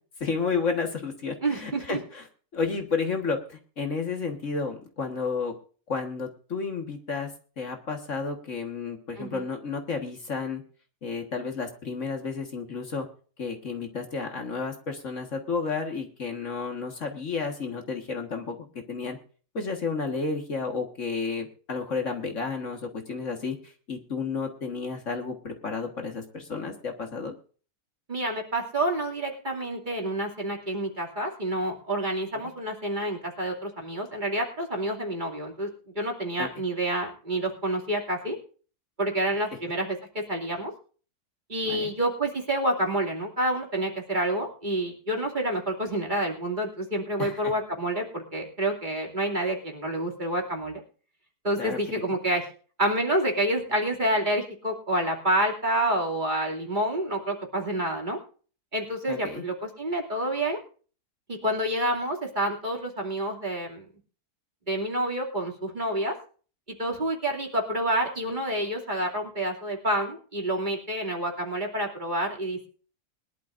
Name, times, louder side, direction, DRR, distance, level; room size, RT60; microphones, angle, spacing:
voice 1, 0.2-2.2 2.5-5.5 5.9-7.3 7.6-10.6 11.0-13.1 13.4-19.2 19.5-22.8 23.1-23.6 23.9-27.3 36.4-36.5 41.7-41.9 47.2-47.5 51.6-51.8 59.1-59.4, left 4 dB, 55° left, 4 dB, 1.9 m, -31 dB
voice 2, 1.4-2.0 9.2-9.4 28.1-35.7 35.9-38.4 39.0-40.0 40.3-40.7 41.5-50.8 51.4-52.4 52.8-58.2 58.7-60.6 61.3-63.9 64.7-66.1 66.8-72.7, right 1 dB, 30° right, 0 dB, 2.7 m, -28 dB
21.5 x 11.5 x 2.6 m, 0.40 s
omnidirectional pair, 1.6 m